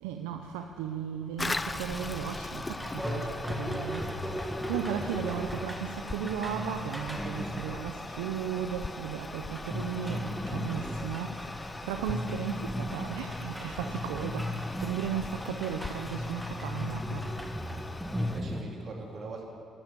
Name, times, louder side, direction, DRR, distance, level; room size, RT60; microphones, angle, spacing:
voice 1, 0.0-17.3, right 8 dB, 85° right, 5 dB, 0.6 m, -36 dB
Toilet flush, 1.4-18.4, left 2 dB, 25° left, 0.6 m, -40 dB
sound 1, 1.9-18.6, left 1 dB, 5° right, 2.1 m, -37 dB
voice 2, 17.8-19.5, right 3 dB, 55° right, -1 dB, 3.5 m, -43 dB
12.5 x 12.5 x 8.3 m, 2.7 s
hypercardioid pair, 55°, 0 cm